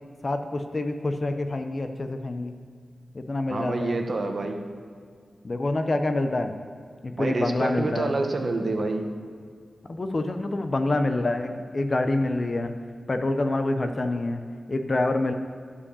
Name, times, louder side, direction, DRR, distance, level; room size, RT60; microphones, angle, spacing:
voice 1, 0.2-2.5 3.1-4.0 5.4-6.6 7.0-8.1 9.9-12.7 13.1-14.4 14.7-15.3, left 2 dB, 35° left, 7 dB, 0.6 m, -26 dB
voice 2, 3.5-4.6 7.2-9.1, right 2 dB, 45° right, 4 dB, 0.9 m, -27 dB
11.5 x 4.9 x 6.9 m, 2.1 s
wide cardioid pair, 140°, 0 cm